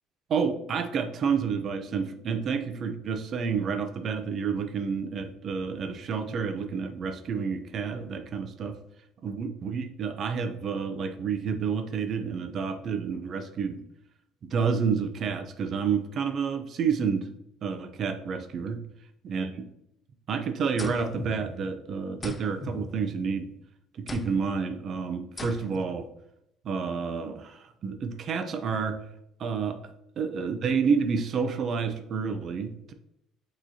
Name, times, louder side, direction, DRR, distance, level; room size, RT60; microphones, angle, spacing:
voice 1, 0.3-8.8 9.2-13.8 14.5-17.3 17.6-18.8 19.2-19.6 20.3-23.5 23.9-26.1 26.6-29.0 29.4-29.8 30.2-32.9, right 6 dB, 50° right, 8 dB, 0.5 m, -29 dB
sound 1, 20.8-21.8 22.2-23.5 24.1-24.6 25.4-26.0, left 3 dB, 20° left, 0.3 m, -39 dB
6.1 x 3.0 x 2.7 m, 0.79 s
cardioid pair, 105°, 0 cm